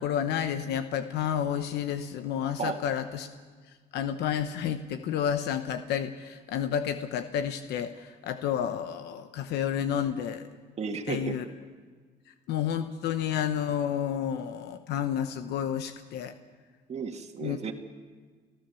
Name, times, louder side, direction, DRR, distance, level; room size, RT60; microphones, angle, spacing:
voice 1, 0.0-3.3 3.9-10.5 11.1-11.4 12.5-16.3 17.4-17.6, left 9 dB, 80° left, 9 dB, 1.0 m, -30 dB
voice 2, 10.8-11.4 16.9-17.7, right 5 dB, 40° right, 5 dB, 2.0 m, -33 dB
29.5 x 15.0 x 7.0 m, 1.5 s
cardioid pair, 110°, 17 cm